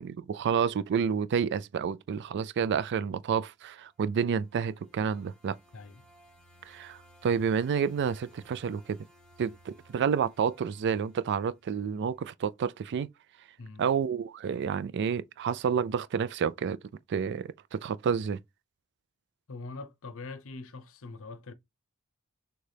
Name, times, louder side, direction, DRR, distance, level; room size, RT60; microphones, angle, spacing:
voice 1, 0.0-5.6 6.7-9.0 9.4-13.1 13.8-16.8 17.1-18.4, right 7 dB, 50° right, 0.3 m, -29 dB
sound 1, 3.9-12.1, equal, 5° left, 2.3 m, -60 dB
voice 2, 5.7-6.0 13.6-13.9 19.5-21.5, left 3 dB, 65° left, 0.7 m, -43 dB
6.4 x 2.3 x 3.3 m
head